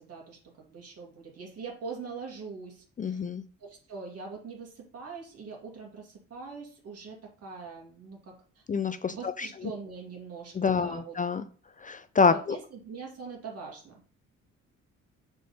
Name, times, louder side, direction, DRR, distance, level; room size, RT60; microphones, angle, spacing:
voice 1, 0.0-3.2 3.6-8.6 9.0-11.2 12.3-14.0, right 5 dB, 55° right, 0 dB, 2.3 m, -43 dB
voice 2, 3.0-3.4 8.7-9.5 10.6-11.4 11.8-12.6, left 5 dB, 25° left, 12 dB, 0.4 m, -27 dB
6.6 x 3.7 x 4.1 m, 0.43 s
cardioid pair, 90°, 30 cm